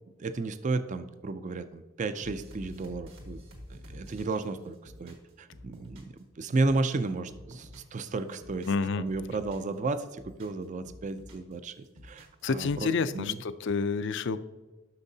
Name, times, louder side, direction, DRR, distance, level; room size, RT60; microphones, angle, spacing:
voice 1, 0.2-3.4 3.7-8.7 9.0-11.7 12.0-13.4, right 3 dB, 35° right, 11 dB, 0.4 m, -33 dB
sound 1, 2.2-6.2 6.5-8.0 8.3-9.7 10.1-11.5 11.8-12.8, equal, 65° right, 1.5 m, -49 dB
voice 2, 8.7-9.0 12.4-14.4, left 4 dB, 55° left, 13 dB, 0.4 m, -29 dB
11.5 x 6.1 x 2.7 m, 1.2 s
head